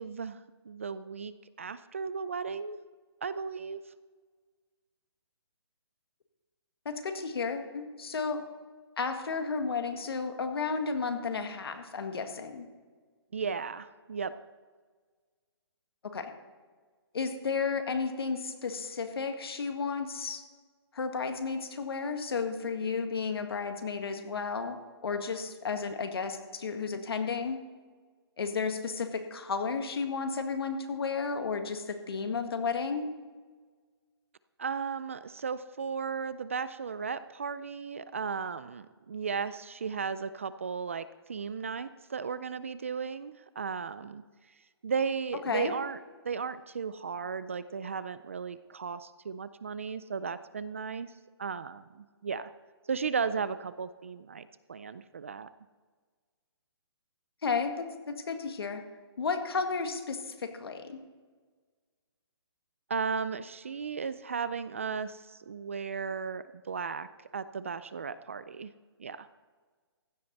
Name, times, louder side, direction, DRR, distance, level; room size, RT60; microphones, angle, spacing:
voice 1, 0.0-2.8 3.2-3.8 13.3-14.3 34.6-44.2 44.8-46.0 46.2-51.1 51.4-52.5 52.9-55.5 62.9-67.1 67.3-68.7 69.0-69.3, right 5 dB, 30° right, 15 dB, 0.3 m, -35 dB
voice 2, 6.9-8.5 9.0-12.7 16.1-16.3 17.1-20.4 20.9-24.8 25.0-27.6 28.4-33.1 45.5-45.7 57.4-58.8 59.2-61.0, left 5 dB, 65° left, 6 dB, 1.9 m, -33 dB
15.5 x 11.0 x 4.1 m, 1.5 s
hypercardioid pair, 175°, 14 cm